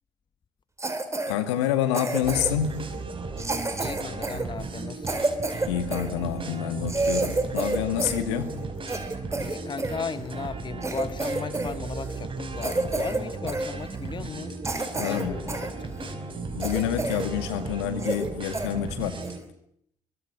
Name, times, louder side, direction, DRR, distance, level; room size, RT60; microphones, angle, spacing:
Cough, 0.8-1.3 1.9-2.7 3.4-6.1 6.6-6.7 6.9-8.2 8.5-10.0 10.5-10.6 10.8-11.7 12.0-12.2 12.6-13.2 13.5-13.7 14.2-14.3 14.6-15.7 16.1-16.2 16.6-17.3 17.6-17.7 18.0-18.3 18.5-18.7 19.2-19.4, right 2 dB, 20° right, 4.4 m, -29 dB
voice 1, 1.3-2.8 5.7-8.5 14.9-15.4 16.5-19.2, left 10 dB, 80° left, 2.2 m, -28 dB
sound 1, 2.2-19.4, right 3 dB, 35° right, 5.0 m, -35 dB
voice 2, 3.8-5.3 9.4-14.6 14.9-16.4, left 5 dB, 30° left, 1.2 m, -36 dB
25.5 x 23.0 x 7.6 m
hypercardioid pair, 50°, 15 cm